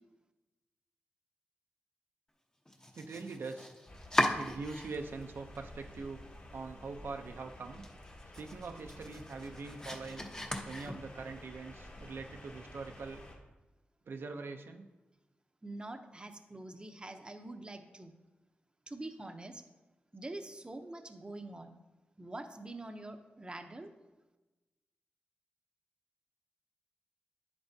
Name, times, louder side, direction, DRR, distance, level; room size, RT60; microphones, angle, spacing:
Domestic sounds home sounds, 2.7-5.2 5.5-6.3 6.7-6.8 7.2-7.3 7.7-11.3, left 1 dB, 20° left, 0.9 m, -38 dB
voice 1, 2.9-3.7 4.4-6.2 6.5-7.9 8.4-10.3 10.6-13.3 14.1-14.9, right 4 dB, 75° right, 4 dB, 0.6 m, -43 dB
sound 1, 3.9-13.4, left 1 dB, 45° left, 1.8 m, -52 dB
voice 2, 15.6-18.1 18.9-19.6 20.1-21.7 22.2-23.9, right 2 dB, 25° right, 6 dB, 0.7 m, -45 dB
9.4 x 7.9 x 2.7 m, 1.1 s
cardioid pair, 65°, 4 cm